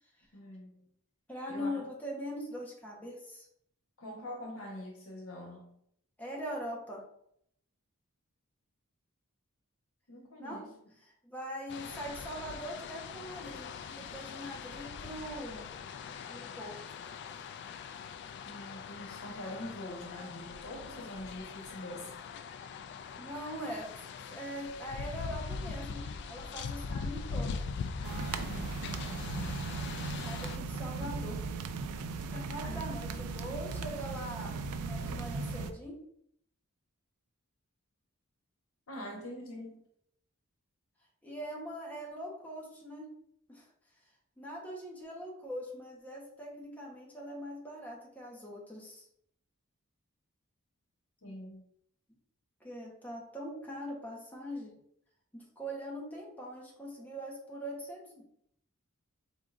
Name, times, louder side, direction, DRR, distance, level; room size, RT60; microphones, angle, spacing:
voice 1, 0.3-0.9 1.5-1.9 4.0-5.7 10.1-10.7 18.5-22.1 28.0-29.7 32.6-32.8 38.9-39.8 51.2-51.6, left 1 dB, 70° left, 0 dB, 1.2 m, -44 dB
voice 2, 1.3-3.5 6.2-7.0 10.4-10.6 11.2-15.7 16.3-17.0 23.2-26.0 26.3-27.5 30.2-31.4 32.3-34.6 34.8-36.0 41.2-43.1 43.5-43.7 44.4-49.0 52.6-54.7 55.3-58.2, equal, 10° left, -4 dB, 1.1 m, -42 dB
sound 1, 11.7-30.6, left 5 dB, 50° left, 0.3 m, -42 dB
sound 2, 28.0-35.7, right 4 dB, 85° right, 0.4 m, -37 dB
4.7 x 3.7 x 2.5 m, 0.70 s
head